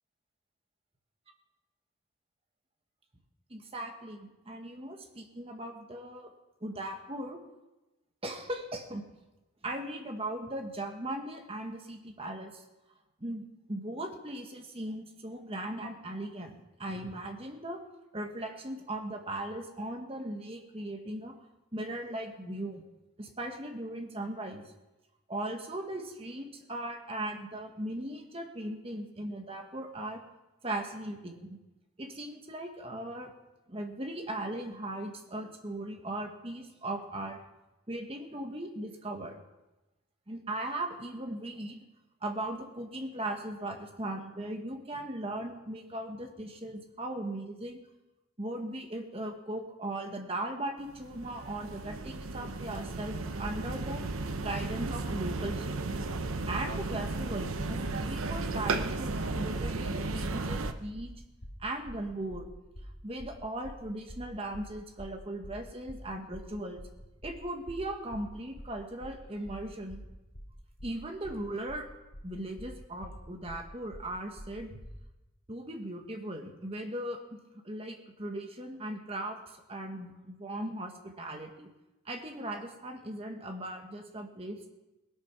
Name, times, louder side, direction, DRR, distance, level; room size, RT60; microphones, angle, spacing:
voice 1, 3.5-6.3 6.6-7.4 8.2-9.0 9.6-12.6 13.2-17.8 18.1-21.3 21.7-22.8 23.2-24.6 25.3-30.2 30.6-31.6 32.0-33.3 33.7-37.4 37.9-39.4 40.3-41.8 42.2-47.8 48.4-54.0 54.4-55.8 56.5-61.1 61.6-62.5 63.0-66.8 67.2-70.0 70.8-71.9 72.2-74.8 75.5-77.4 77.6-81.7 82.0-84.7, right 1 dB, 25° right, 4 dB, 1.4 m, -38 dB
sound 1, 50.9-60.7, right 3 dB, 70° right, 0.8 m, -34 dB
sound 2, 57.8-75.1, equal, 65° left, 3.3 m, -47 dB
19.0 x 8.5 x 5.9 m, 1.0 s
head